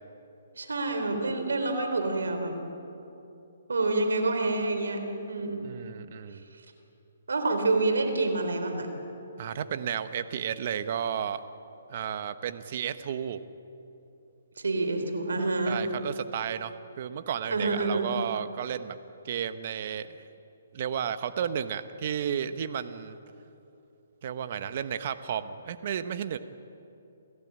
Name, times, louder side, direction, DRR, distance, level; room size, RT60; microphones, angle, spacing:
voice 1, 0.6-2.6 3.7-5.6 7.3-8.9 14.6-15.8 17.5-18.1, right 2 dB, 90° right, 6 dB, 3.9 m, -27 dB
voice 2, 5.6-6.4 9.4-11.4 11.9-13.4 15.7-19.0 19.2-20.2 20.7-23.2 24.2-26.4, right 8 dB, 45° right, 12 dB, 1.1 m, -33 dB
28.5 x 16.0 x 8.9 m, 2.9 s
hypercardioid pair, 155°, 0 cm